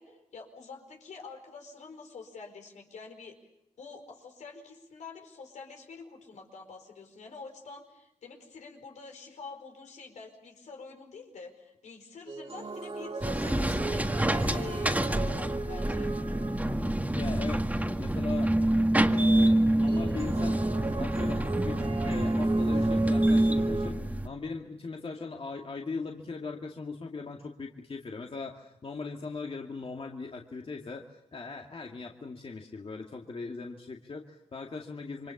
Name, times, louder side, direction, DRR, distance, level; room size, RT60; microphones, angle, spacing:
voice 1, 0.0-3.4 3.8-14.1 14.5-16.1, left 4 dB, 85° left, 3 dB, 4.8 m, -47 dB
sound 1, 12.3-17.3 19.9-23.9, right 3 dB, 50° right, 2.6 m, -37 dB
sound 2, 13.2-24.3, right 1 dB, 10° right, 1.9 m, -26 dB
voice 2, 17.1-18.5 19.1-20.6 21.0-24.0 24.2-35.3, left 4 dB, 50° left, 1 dB, 2.2 m, -39 dB
28.0 x 24.0 x 7.2 m, 0.84 s
cardioid pair, 55°, 12 cm